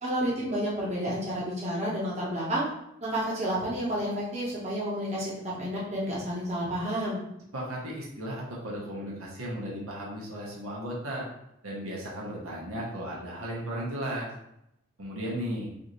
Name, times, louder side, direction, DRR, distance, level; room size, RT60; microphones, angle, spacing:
voice 1, 0.0-2.7 3.0-7.2, equal, 30° right, -6 dB, 1.1 m, -30 dB
voice 2, 7.5-11.3 11.6-14.3 15.0-15.7, equal, 85° right, -4 dB, 1.2 m, -35 dB
4.7 x 2.7 x 3.1 m, 0.80 s
head